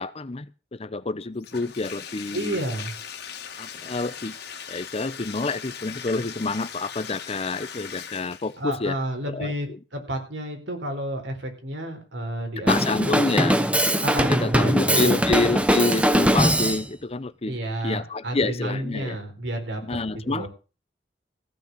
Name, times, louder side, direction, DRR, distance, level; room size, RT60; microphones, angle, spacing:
voice 1, 0.0-2.6 3.6-4.4 4.7-9.0 9.3-9.5 12.6-13.6 14.3-17.6 17.8-19.2 19.8-20.5, left 3 dB, 35° left, 16 dB, 0.7 m, -28 dB
Bathtub (filling or washing), 1.4-8.7, left 7 dB, 65° left, 2.2 m, -39 dB
voice 2, 2.3-2.9 8.6-12.7 13.0-13.3 14.0-15.2 17.5-19.8 20.1-20.5, right 1 dB, 90° right, 4 dB, 4.1 m, -30 dB
Drum kit, 12.7-16.8, right 1 dB, 5° right, 1.0 m, -21 dB
15.5 x 6.4 x 8.2 m, 0.35 s
head